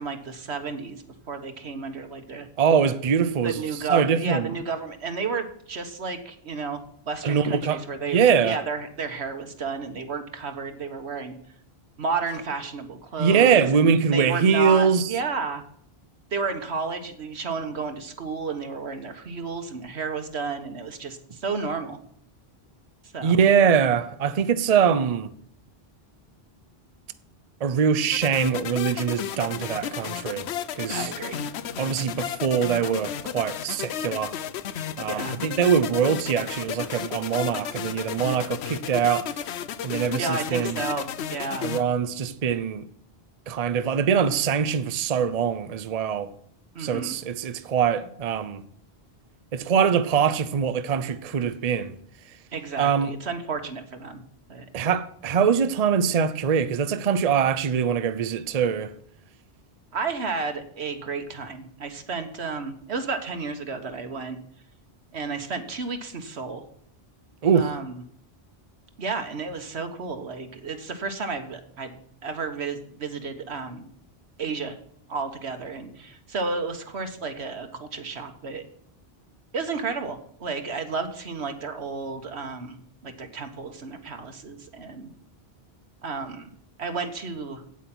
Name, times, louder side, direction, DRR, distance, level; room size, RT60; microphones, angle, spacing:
voice 1, 0.0-2.5 3.4-6.8 7.1-11.3 12.0-15.6 16.3-22.0 23.1-23.4 30.9-31.4 35.1-35.4 40.2-41.7 46.7-47.2 52.5-54.2 54.5-54.6 59.9-64.4 65.1-66.6 67.5-68.0 69.0-72.0 72.2-73.9 74.4-74.8 75.1-78.6 79.5-85.1 86.0-86.5 86.8-87.6, right 4 dB, 85° right, 1.6 m, -32 dB
voice 2, 2.6-3.6 3.9-4.5 7.2-7.8 8.1-8.6 13.2-15.1 23.2-25.3 27.6-30.5 30.7-31.1 31.8-34.3 35.0-39.3 39.8-40.8 41.6-42.9 43.5-46.3 46.8-48.6 49.5-51.9 52.8-53.1 54.7-58.9 67.4-67.7, right 7 dB, 45° right, 0.6 m, -23 dB
sound 1, 28.1-41.8, left 9 dB, 85° left, 0.9 m, -33 dB
8.5 x 8.2 x 6.0 m
omnidirectional pair, 1.1 m